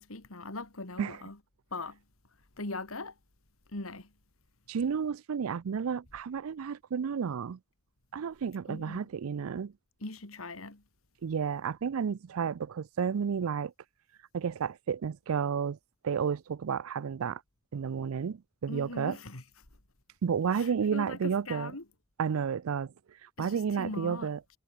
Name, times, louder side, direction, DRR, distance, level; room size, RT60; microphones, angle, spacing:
voice 1, 0.0-1.4 1.7-2.0 2.6-3.1 3.7-4.1 8.7-9.1 10.0-10.8 18.7-19.4 20.5-21.8 23.4-24.3, left 2 dB, 85° left, 3.0 m, -40 dB
voice 2, 4.7-7.6 8.1-9.7 11.2-13.7 14.3-15.8 16.0-17.4 17.7-19.2 20.2-21.7 22.2-22.9 23.4-24.4, right 6 dB, 90° right, 0.4 m, -31 dB
head